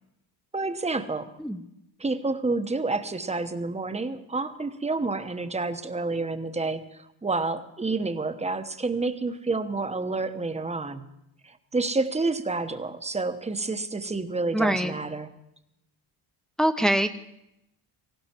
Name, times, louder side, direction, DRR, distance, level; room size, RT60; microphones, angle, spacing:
voice 1, 0.5-1.3 2.0-11.1 11.4-15.3, right 3 dB, 15° right, 8 dB, 1.1 m, -29 dB
voice 2, 14.5-14.9 16.6-17.1, right 1 dB, ahead, 7 dB, 0.9 m, -23 dB
18.5 x 16.0 x 4.5 m, 0.83 s
cardioid pair, 100°, 44 cm